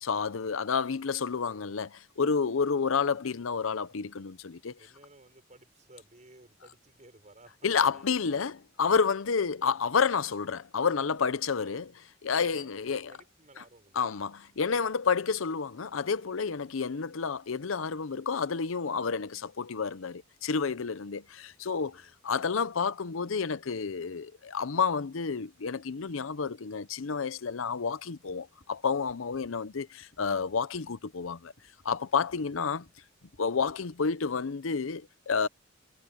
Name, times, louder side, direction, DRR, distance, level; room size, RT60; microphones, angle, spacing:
voice 1, 0.0-4.8 7.6-13.1 14.0-31.5 31.8-32.9 33.4-35.5, left 5 dB, 85° left, 0.7 m, -30 dB
voice 2, 4.8-8.4 9.6-9.8 11.6-11.8 12.3-14.3 20.8-22.2 32.3-32.5, right 2 dB, 35° right, 6.2 m, -57 dB
sound 1, 28.2-34.1, left 1 dB, 55° left, 3.5 m, -64 dB
head